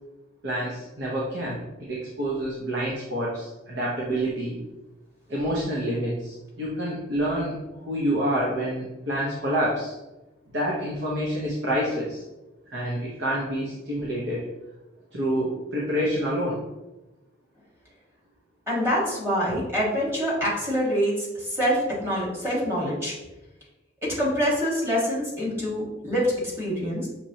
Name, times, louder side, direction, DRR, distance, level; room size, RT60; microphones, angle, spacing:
voice 1, 0.4-4.6 5.3-10.0 10.5-12.2 12.7-14.5 15.1-16.6, equal, 65° right, -4 dB, 0.8 m, -28 dB
voice 2, 18.7-23.1 24.0-27.1, equal, 15° right, -6 dB, 1.4 m, -25 dB
5.9 x 3.1 x 2.7 m, 1.0 s
head